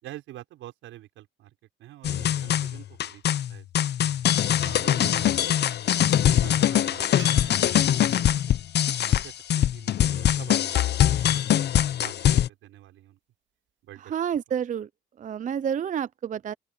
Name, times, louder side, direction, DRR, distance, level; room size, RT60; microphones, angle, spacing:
voice 1, 0.0-3.2 3.5-3.9 4.6-8.6 9.0-13.2 13.8-14.1, right 14 dB, 90° right, 5.7 m, -47 dB
sound 1, 2.0-12.5, left 11 dB, 55° left, 0.7 m, -23 dB
sound 2, 7.2-10.4 13.7-13.8, right 9 dB, 70° right, 2.1 m, -50 dB
voice 2, 14.1-14.9 15.2-16.5, right 8 dB, 40° right, 0.5 m, -29 dB
open air
cardioid pair, 90°, 20 cm